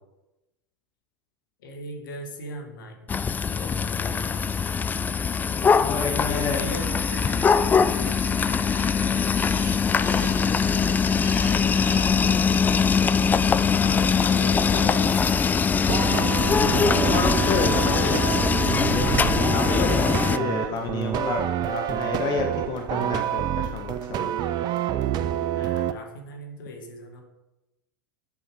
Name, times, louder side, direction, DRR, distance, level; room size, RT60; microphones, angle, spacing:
voice 1, 1.6-3.1 3.5-5.0 5.7-8.9 9.9-11.1 11.5-15.9 25.5-27.2, left 1 dB, 70° left, 2 dB, 1.9 m, -40 dB
sound 1, 3.1-20.4, left 6 dB, 15° left, 0.3 m, -22 dB
voice 2, 3.5-4.0 5.4-6.6 9.3-9.4 13.9-14.1 16.7-18.3 18.8-24.3, left 5 dB, 40° left, 3 dB, 1.1 m, -30 dB
sound 2, 6.7-12.1, right 3 dB, 75° right, 1.6 m, -42 dB
sound 3, 15.7-25.9, right 11 dB, 40° right, 0.5 m, -27 dB
7.4 x 5.5 x 4.9 m, 0.99 s
hypercardioid pair, 95°, 11 cm